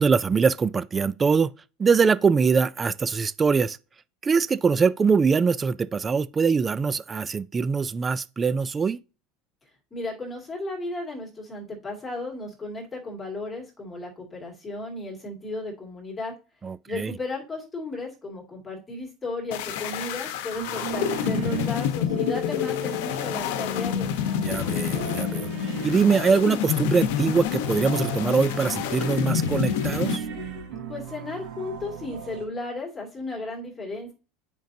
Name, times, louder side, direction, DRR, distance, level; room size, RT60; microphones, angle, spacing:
voice 1, 0.0-1.5 1.8-3.8 4.2-9.0 16.6-17.1 24.4-25.5 25.8-30.2, right 5 dB, 15° right, 0.3 m, -23 dB
voice 2, 9.9-16.3 16.9-24.1 30.9-34.1, left 2 dB, 10° left, 2.3 m, -34 dB
sound 1, 19.5-30.2, left 9 dB, 75° left, 0.9 m, -28 dB
sound 2, 20.5-32.4, right 6 dB, 55° right, 3.3 m, -37 dB
9.1 x 5.2 x 2.7 m
cardioid pair, 170°, 0 cm